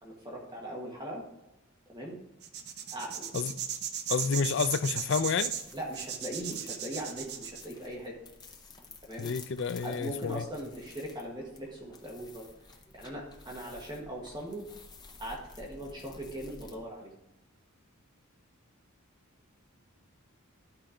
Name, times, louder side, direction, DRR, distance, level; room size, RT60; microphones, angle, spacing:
voice 1, 0.0-1.2 1.9-2.2 2.9-3.3 5.7-8.2 9.0-9.3 9.8-12.5 12.9-14.6 15.2-17.1, right 1 dB, 20° right, 1.5 m, -40 dB
sound 1, 2.4-7.6, right 9 dB, 50° right, 0.7 m, -36 dB
voice 2, 4.1-5.5 9.2-10.5, left 5 dB, 55° left, 0.4 m, -29 dB
sound 2, 4.1-16.8, left 3 dB, 20° left, 0.8 m, -53 dB
11.5 x 4.4 x 4.9 m
head